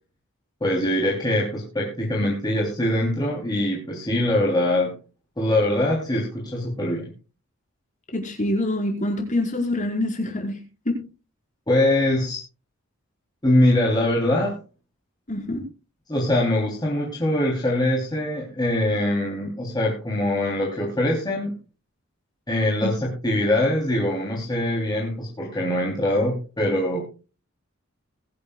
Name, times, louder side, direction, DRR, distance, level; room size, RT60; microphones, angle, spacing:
voice 1, 0.6-4.9 5.4-7.1 11.7-12.4 13.4-14.5 16.1-21.5 22.5-27.0, left 1 dB, 20° left, -3 dB, 3.3 m, -23 dB
voice 2, 8.1-10.6 10.8-11.0 15.3-15.6 22.8-22.9, left 1 dB, 40° left, 1 dB, 4.9 m, -25 dB
21.5 x 11.5 x 2.4 m, 0.34 s
head